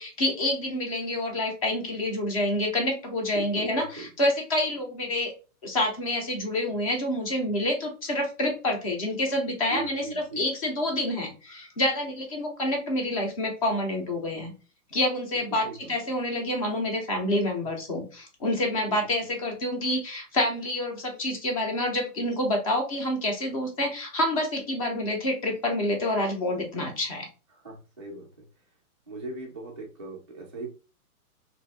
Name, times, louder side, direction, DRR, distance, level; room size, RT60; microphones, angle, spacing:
voice 1, 0.0-5.3 5.6-10.1 10.4-14.5 14.9-27.3, left 1 dB, 25° left, 2 dB, 0.6 m, -28 dB
voice 2, 3.3-4.1 9.7-10.4 15.6-15.9 27.6-28.4 29.1-30.7, right 3 dB, 20° right, -8 dB, 0.3 m, -39 dB
2.5 x 2.3 x 3.3 m, 0.34 s
hypercardioid pair, 155°, 45 cm